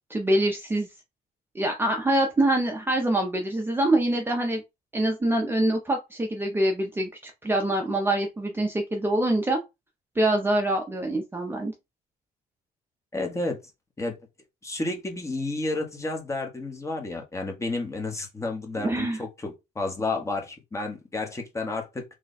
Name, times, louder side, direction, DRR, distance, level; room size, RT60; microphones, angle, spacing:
voice 1, 0.1-0.9 1.5-4.6 4.9-9.6 10.2-11.7 18.8-19.2, right 1 dB, 15° right, 0.6 m, -25 dB
voice 2, 13.1-13.6 14.0-14.2 14.6-22.0, left 2 dB, 15° left, 1.0 m, -31 dB
3.2 x 2.2 x 4.0 m
cardioid pair, 110°, 17 cm